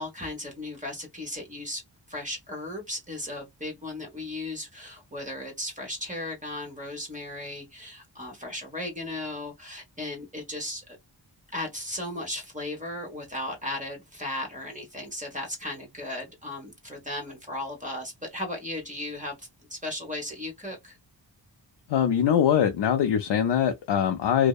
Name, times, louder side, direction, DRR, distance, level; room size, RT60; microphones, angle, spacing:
voice 1, 0.0-1.8 2.1-11.0 11.5-21.0, left 1 dB, 15° right, 1.1 m, -36 dB
voice 2, 21.9-24.5, left 9 dB, 70° left, 0.5 m, -22 dB
2.7 x 2.0 x 2.3 m
cardioid pair, 65°, 44 cm